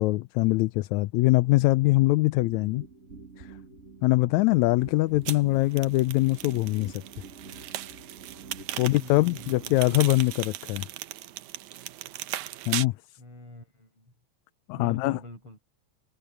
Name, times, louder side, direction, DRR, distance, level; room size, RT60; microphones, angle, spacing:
voice 1, 0.0-2.8 3.4-3.5 4.0-7.0 8.8-10.9 12.7-12.9 14.7-15.2, left 20 dB, 80° left, 1.9 m, -23 dB
sound 1, 2.4-10.3, right 4 dB, 25° right, 2.5 m, -47 dB
sound 2, 5.3-12.9, right 14 dB, 80° right, 2.2 m, -38 dB
voice 2, 8.8-10.1 13.2-14.1 14.7-15.6, left 1 dB, 45° left, 9.1 m, -45 dB
omnidirectional pair, 3.3 m